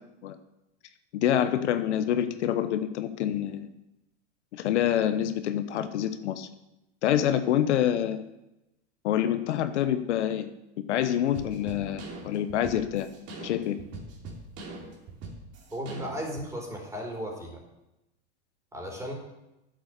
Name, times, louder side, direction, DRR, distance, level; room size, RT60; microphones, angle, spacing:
voice 1, 1.1-3.7 4.5-6.5 7.0-8.2 9.0-10.5 10.9-13.1 13.4-13.8, left 10 dB, 80° left, 10 dB, 1.0 m, -26 dB
sound 1, 11.3-16.5, right 2 dB, 45° right, 3.1 m, -42 dB
voice 2, 15.7-17.6 18.7-19.1, equal, 10° right, 0 dB, 4.0 m, -35 dB
10.0 x 7.9 x 6.5 m, 0.91 s
supercardioid pair, 115°, 34 cm